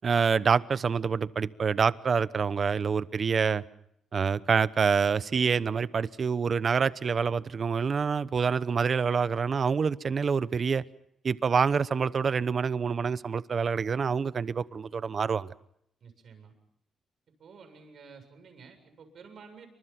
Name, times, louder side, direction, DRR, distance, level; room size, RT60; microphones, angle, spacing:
voice 1, 0.0-3.6 4.1-10.8 11.2-15.5, right 6 dB, 40° right, 0.9 m, -26 dB
voice 2, 16.0-16.5 17.4-19.7, right 5 dB, 55° right, 7.5 m, -51 dB
28.5 x 25.5 x 5.9 m
cardioid pair, 125°, 0 cm